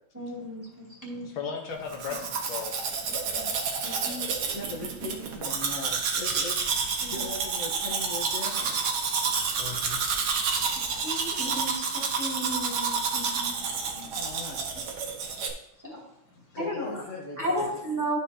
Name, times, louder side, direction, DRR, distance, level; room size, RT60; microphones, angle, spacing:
voice 1, 0.1-1.3 3.3-3.5 3.8-4.2 7.0-7.2 11.0-13.6 13.9-14.1 15.8-16.0 16.6-17.0 17.4-18.2, right 1 dB, 10° right, -5 dB, 2.2 m, -34 dB
voice 2, 1.3-2.9 8.6-8.7 9.6-10.0, left 6 dB, 75° left, 1 dB, 1.9 m, -36 dB
Domestic sounds home sounds, 1.9-15.5, right 5 dB, 80° right, 1.8 m, -29 dB
voice 3, 4.5-6.6 7.1-8.8 14.1-14.8 16.5-17.7, left 2 dB, 50° left, -2 dB, 1.2 m, -39 dB
12.0 x 5.1 x 2.8 m, 0.81 s
omnidirectional pair, 2.3 m